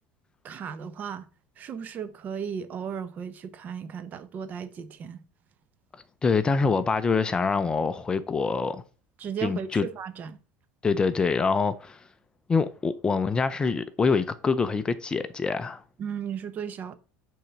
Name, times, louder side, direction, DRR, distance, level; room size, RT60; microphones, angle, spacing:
voice 1, 0.4-1.3 1.6-5.2 9.2-10.4 16.0-17.0, right 7 dB, 40° right, 0.9 m, -35 dB
voice 2, 6.2-8.8 9.4-9.9 10.8-12.0 12.5-15.8, left 4 dB, 20° left, 0.6 m, -25 dB
9.3 x 3.9 x 5.9 m
supercardioid pair, 130°, 5 cm